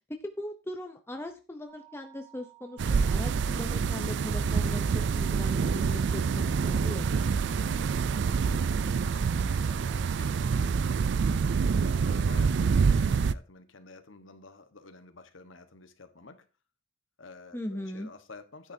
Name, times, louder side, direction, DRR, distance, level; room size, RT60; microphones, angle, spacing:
voice 1, 0.1-7.3 17.5-18.1, left 1 dB, 10° left, 0.8 m, -39 dB
sound 1, 1.7-10.2, right 20 dB, 30° right, 3.5 m, -55 dB
sound 2, 2.8-13.3, right 5 dB, 65° right, 0.4 m, -26 dB
voice 2, 7.7-9.3 9.6-10.8 11.8-16.4 17.2-18.7, left 3 dB, 75° left, 1.4 m, -50 dB
12.0 x 9.5 x 2.8 m
head